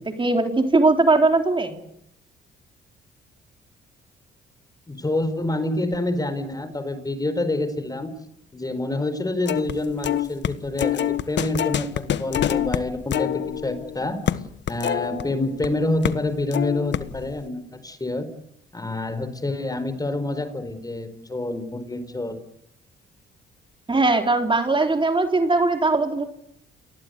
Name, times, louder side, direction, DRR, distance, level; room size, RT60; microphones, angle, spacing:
voice 1, 0.0-1.8 23.9-26.2, right 3 dB, 25° right, 5 dB, 3.6 m, -20 dB
voice 2, 4.9-8.1 8.5-14.3 14.7-18.3 18.7-22.4, left 2 dB, 20° left, 12 dB, 4.5 m, -27 dB
sound 1, 9.5-9.7 10.0-15.7 16.0-16.2 16.5-17.3, left 10 dB, 65° left, 1.4 m, -26 dB
29.0 x 20.0 x 8.3 m, 0.71 s
cardioid pair, 90°, 20 cm